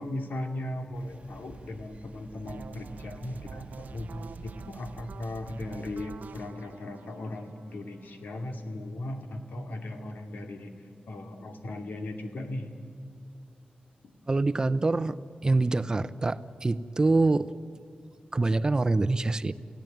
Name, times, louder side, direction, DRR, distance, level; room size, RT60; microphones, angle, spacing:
voice 1, 0.0-4.1 4.4-12.7, left 1 dB, 85° left, 4 dB, 2.5 m, -37 dB
sound 1, 0.9-6.1, right 3 dB, 45° right, 1.1 m, -51 dB
sound 2, 2.5-8.4, right 5 dB, 65° right, 0.7 m, -46 dB
voice 2, 14.3-15.2 15.4-17.5 18.3-19.5, right 3 dB, 25° right, 14 dB, 0.7 m, -25 dB
29.0 x 17.0 x 9.3 m, 2.7 s
wide cardioid pair, 155°, 3 cm